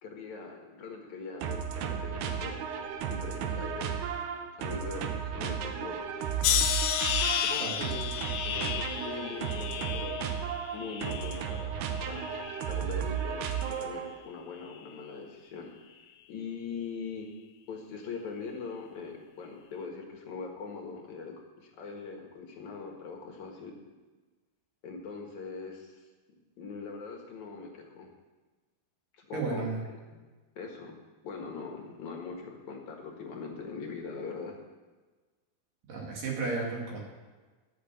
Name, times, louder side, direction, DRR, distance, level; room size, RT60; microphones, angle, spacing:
voice 1, 0.0-2.5 3.1-3.9 4.6-6.0 7.4-8.1 8.4-11.7 12.0-12.3 12.7-15.7 16.3-17.3 17.7-23.8 24.8-26.0 26.6-28.1 29.2-29.6 30.6-31.0 31.2-34.6, left 5 dB, 55° left, 1 dB, 2.7 m, -41 dB
sound 1, 1.4-14.2, right 8 dB, 85° right, 3.0 m, -34 dB
sound 2, 6.4-11.6 12.0-12.7 13.4-13.8, left 10 dB, 80° left, 2.0 m, -32 dB
voice 2, 7.6-8.0 29.3-29.8 35.9-37.0, right 3 dB, 60° right, -2 dB, 3.8 m, -33 dB
12.0 x 6.7 x 8.0 m, 1.3 s
omnidirectional pair, 4.5 m